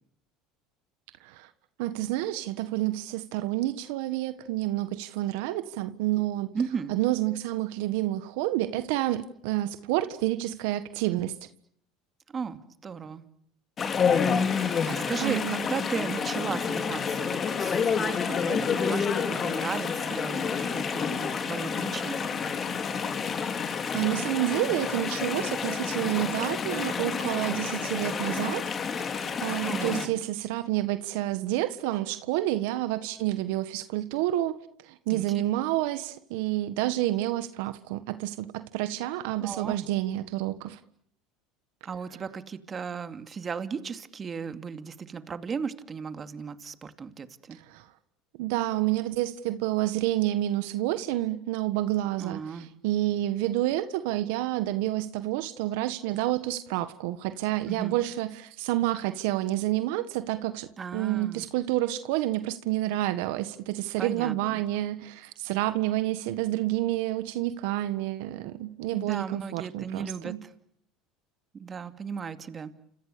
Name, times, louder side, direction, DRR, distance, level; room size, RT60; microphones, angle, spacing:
voice 1, 1.8-6.5 6.9-11.3 14.8-15.6 23.6-28.7 29.0-34.6 34.8-40.8 47.5-47.9 48.4-70.4, right 15 dB, 75° right, 1.5 m, -29 dB
voice 2, 6.5-6.9 12.3-13.2 14.4-22.3 29.6-30.0 35.1-35.2 39.4-39.8 41.8-47.6 52.2-52.7 57.7-58.0 60.8-61.4 64.0-64.6 68.9-70.5 71.6-72.7, right 6 dB, 30° right, 2.5 m, -35 dB
Chatter / Stream, 13.8-30.1, left 6 dB, 35° left, 4.0 m, -29 dB
29.5 x 27.0 x 6.9 m
supercardioid pair, 100°, 0 cm